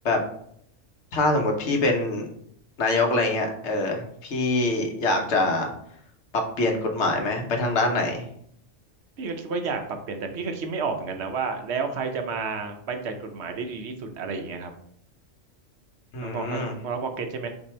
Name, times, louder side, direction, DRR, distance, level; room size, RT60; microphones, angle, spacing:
voice 1, 1.1-2.2 2.8-5.7 6.6-8.2 16.1-16.7, left 2 dB, 65° left, 3 dB, 1.0 m, -24 dB
voice 2, 9.2-14.7 16.2-17.5, right 4 dB, 65° right, 5 dB, 0.9 m, -31 dB
4.3 x 2.7 x 4.3 m, 0.69 s
omnidirectional pair, 1.3 m